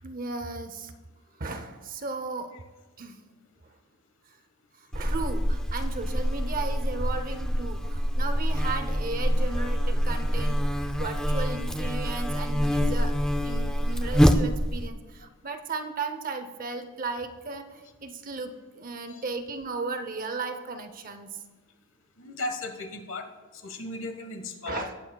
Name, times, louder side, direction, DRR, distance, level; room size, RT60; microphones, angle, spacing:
voice 1, 0.0-0.9 1.4-2.5 3.0-3.2 4.8-21.4 24.7-24.9, right 3 dB, 40° right, 8 dB, 0.7 m, -35 dB
Buzz, 4.9-14.9, equal, 5° left, 0.4 m, -26 dB
voice 2, 22.2-23.3 23.5-24.9, left 2 dB, 55° left, 5 dB, 1.3 m, -36 dB
18.5 x 8.9 x 2.3 m, 1.3 s
head